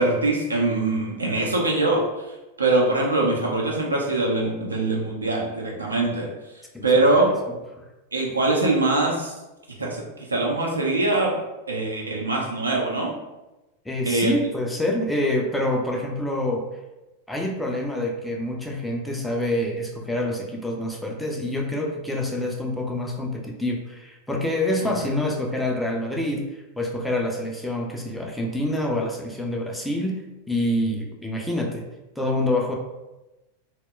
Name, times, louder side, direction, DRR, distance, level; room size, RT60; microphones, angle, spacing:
voice 1, 0.0-2.3 2.6-6.3 6.8-7.3 8.1-9.3 9.8-11.4 11.7-13.1 14.1-14.4 24.8-25.1, right 2 dB, 80° right, -2 dB, 0.6 m, -23 dB
voice 2, 13.9-16.6 17.3-26.5 26.8-30.2 30.5-31.8 32.2-32.7, left 1 dB, 5° left, -1 dB, 0.4 m, -26 dB
2.2 x 2.1 x 3.6 m, 1.0 s
figure-of-eight pair, 90°, 0 cm